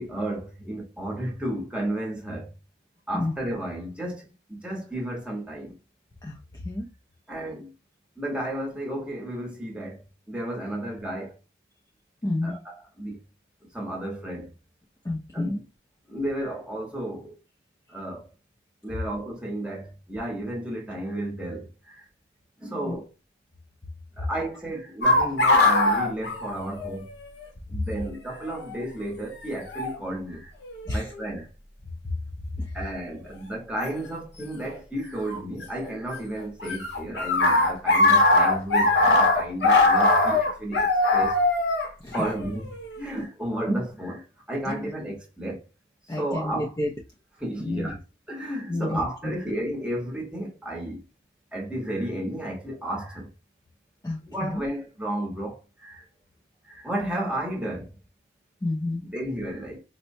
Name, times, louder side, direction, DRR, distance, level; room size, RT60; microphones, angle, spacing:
voice 1, 0.0-2.5 3.1-5.7 7.3-7.7 8.2-11.4 12.4-12.6 13.0-13.2 13.7-14.5 15.3-15.6 16.1-17.4 17.9-18.3 18.8-22.1 22.6-23.1 24.2-27.1 27.7-30.5 30.9-31.5 32.7-41.4 42.1-42.7 43.0-45.6 46.2-46.7 47.4-48.0 48.3-51.0 51.5-53.3 54.3-56.0 56.6-57.9 59.0-59.8, right 1 dB, 5° right, 0.9 m, -32 dB
voice 2, 6.2-6.9 12.2-12.6 15.0-15.6 22.8-23.0 24.2-24.3 26.7-26.8 27.7-27.8 30.9-31.1 32.0-32.1 32.5-32.9 42.0-42.2 44.6-44.9 46.1-46.9 47.6-48.0 48.7-49.4 54.0-54.6 58.6-59.0, left 1 dB, 20° left, 0.4 m, -30 dB
sound 1, 25.0-27.1 27.4-27.5 28.5-28.7 29.7-30.0 30.7-31.2 33.8-33.9 35.3-36.2 36.4-43.0, left 2 dB, 60° left, 0.8 m, -21 dB
4.3 x 2.1 x 2.6 m
head